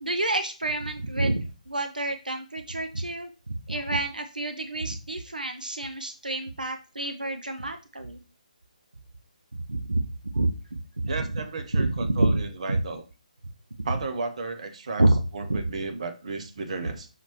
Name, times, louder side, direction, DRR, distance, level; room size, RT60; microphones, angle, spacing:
voice 1, 0.0-3.3 3.7-8.2 9.5-10.0 10.3-11.3 11.7-12.4 12.7-12.8 15.0-15.1, right 2 dB, 85° right, 6 dB, 0.5 m, -28 dB
voice 2, 11.1-13.0 13.8-15.0 15.3-17.1, right 3 dB, 50° right, 7 dB, 0.8 m, -33 dB
5.8 x 3.0 x 2.8 m, 0.32 s
figure-of-eight pair, 145°, 4 cm